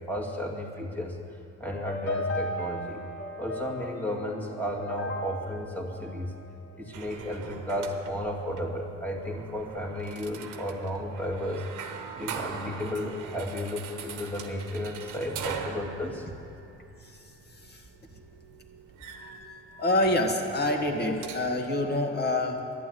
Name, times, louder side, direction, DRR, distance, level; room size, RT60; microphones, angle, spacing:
voice 1, 0.1-1.2 1.6-3.0 3.4-6.3 6.8-11.7 12.2-16.2, left 1 dB, 5° left, 0 dB, 2.2 m, -33 dB
sound 1, 1.7-7.0, left 1 dB, 50° left, 1.8 m, -36 dB
sound 2, 6.9-21.5, right 6 dB, 90° right, 1.2 m, -42 dB
voice 2, 19.8-22.7, left 1 dB, 35° left, 3 dB, 2.0 m, -27 dB
11.5 x 10.5 x 9.3 m, 2.6 s
cardioid pair, 90°, 30 cm